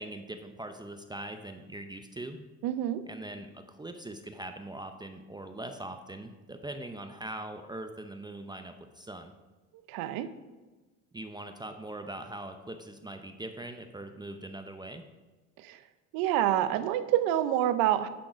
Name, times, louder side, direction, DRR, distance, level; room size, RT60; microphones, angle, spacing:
voice 1, 0.0-2.4 3.1-9.3 11.1-15.0, right 1 dB, 10° right, 6 dB, 0.6 m, -41 dB
voice 2, 2.6-3.0 9.9-10.3 15.6-15.8 16.1-18.1, right 12 dB, 75° right, 12 dB, 0.7 m, -27 dB
10.5 x 3.8 x 4.9 m, 1.2 s
supercardioid pair, 85°, 36 cm